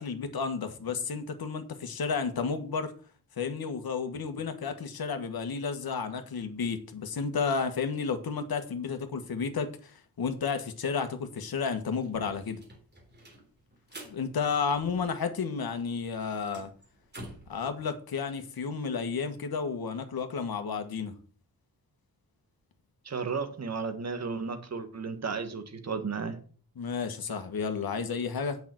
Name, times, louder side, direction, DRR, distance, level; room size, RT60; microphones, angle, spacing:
voice 1, 0.0-2.9 3.4-12.6 14.1-16.7 17.5-21.1 26.8-28.6, left 5 dB, 80° left, 1.5 m, -32 dB
sound 1, 11.7-15.4 15.7-17.6, right 1 dB, 30° right, 3.5 m, -49 dB
voice 2, 23.0-26.4, right 5 dB, 45° right, 1.6 m, -34 dB
8.5 x 6.1 x 7.6 m
wide cardioid pair, 170°, 36 cm